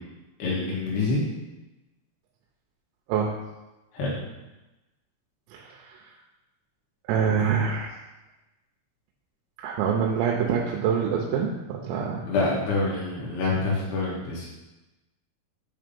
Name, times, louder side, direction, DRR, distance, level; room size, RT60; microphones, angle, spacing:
voice 1, 0.4-1.2 3.9-4.2 12.2-14.5, left 3 dB, 65° left, -5 dB, 3.1 m, -26 dB
voice 2, 5.5-6.0 7.1-8.0 9.6-12.2, right 7 dB, 85° right, -2 dB, 3.4 m, -25 dB
8.6 x 3.2 x 5.2 m, 1.0 s
omnidirectional pair, 5.9 m